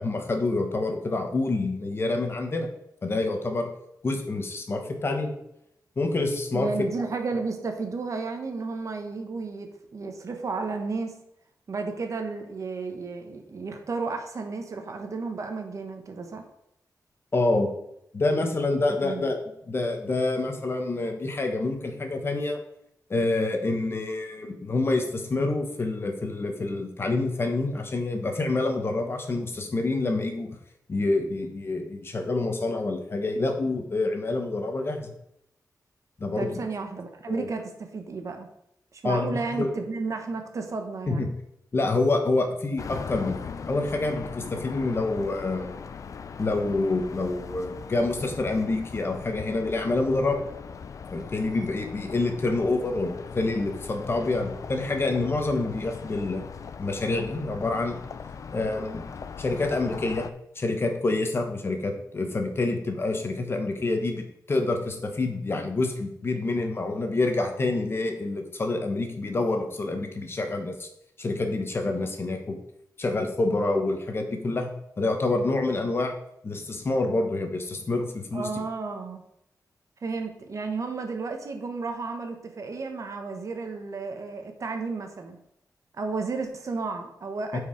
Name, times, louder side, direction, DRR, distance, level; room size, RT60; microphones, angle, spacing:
voice 1, 0.0-2.7 3.0-3.7 4.0-5.3 6.0-6.7 17.3-17.7 18.1-19.4 19.7-22.6 23.1-30.5 30.9-35.1 36.2-36.6 37.3-37.5 39.0-39.7 41.1-41.3 41.7-45.8 46.4-50.4 51.1-56.5 56.8-58.0 58.5-59.1 59.4-60.3 60.6-70.9 71.2-72.6 73.0-74.7 75.0-76.1 76.4-78.5 87.5-87.6, left 2 dB, 35° left, 5 dB, 1.1 m, -27 dB
voice 2, 6.5-11.1 11.7-16.4 18.9-19.3 36.3-38.5 38.9-41.3 78.3-79.2 80.0-85.4 86.0-87.6, right 4 dB, 50° right, 5 dB, 1.1 m, -33 dB
sound 1, 42.8-60.3, left 6 dB, 55° left, 0.4 m, -40 dB
8.9 x 4.8 x 5.1 m, 0.78 s
wide cardioid pair, 160°, 7 cm